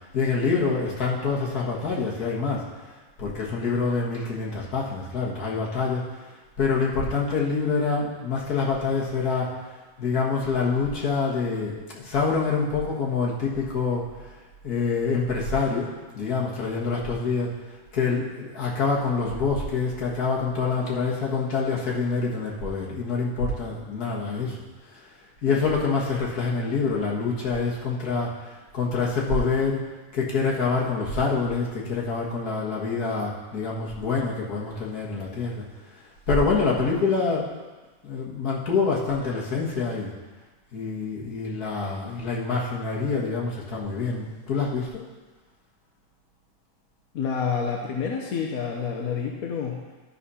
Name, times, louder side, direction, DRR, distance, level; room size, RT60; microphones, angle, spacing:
voice 1, 0.1-2.9 3.2-6.0 6.6-9.5 10.0-14.0 14.6-17.5 17.9-24.6 24.9-25.0 25.4-29.8 30.1-35.6 35.9-36.0 36.3-37.5 38.0-40.1 40.7-45.0, left 4 dB, 85° left, -4 dB, 2.1 m, -26 dB
voice 2, 47.1-49.8, left 6 dB, 70° left, 0 dB, 1.3 m, -28 dB
12.5 x 4.3 x 5.6 m, 1.3 s
omnidirectional pair, 1.6 m